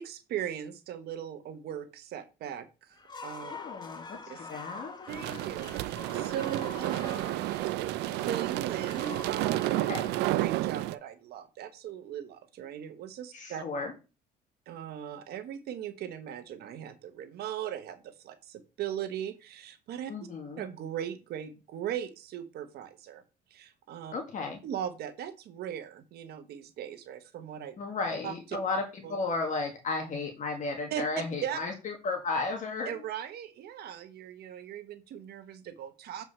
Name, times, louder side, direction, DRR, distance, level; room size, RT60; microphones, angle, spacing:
voice 1, 0.0-3.0 3.2-3.5 4.3-4.5 5.1-7.2 7.8-9.9 10.1-13.6 14.7-20.1 20.6-23.2 23.5-24.1 24.6-27.8 28.2-28.4 29.0-29.2 30.9-31.0 31.4-31.6 32.8-36.2, right 10 dB, 70° right, 9 dB, 1.2 m, -39 dB
sound 1, 2.9-11.0, left 4 dB, 25° left, 1.2 m, -46 dB
voice 2, 3.5-4.9 9.9-10.1 13.3-13.9 20.1-20.6 24.1-24.6 27.8-32.9, left 3 dB, 45° left, 3 dB, 1.9 m, -34 dB
sound 2, 5.1-10.9, right 16 dB, 90° right, 0.5 m, -31 dB
7.7 x 4.7 x 5.5 m, 0.30 s
cardioid pair, 110°, 17 cm